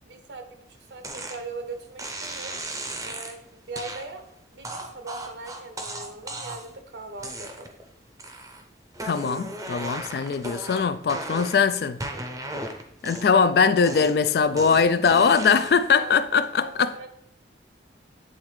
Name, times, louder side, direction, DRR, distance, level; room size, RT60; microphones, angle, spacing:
voice 1, 0.1-2.6 3.0-4.2 4.5-7.8 11.4-11.6 12.1-12.2 13.2-13.3 15.9-16.1 16.6-17.1, right 3 dB, 70° right, 0.8 m, -40 dB
sound 1, 1.0-1.4 2.0-3.4 3.8-4.0 4.6-6.8 7.2-7.8 8.2-8.6 8.9-11.7 12.0-13.5 13.8-15.9, right 1 dB, 20° right, 0.6 m, -36 dB
voice 2, 9.0-12.0 13.0-16.9, left 5 dB, 55° left, 0.3 m, -21 dB
8.7 x 3.6 x 3.2 m
head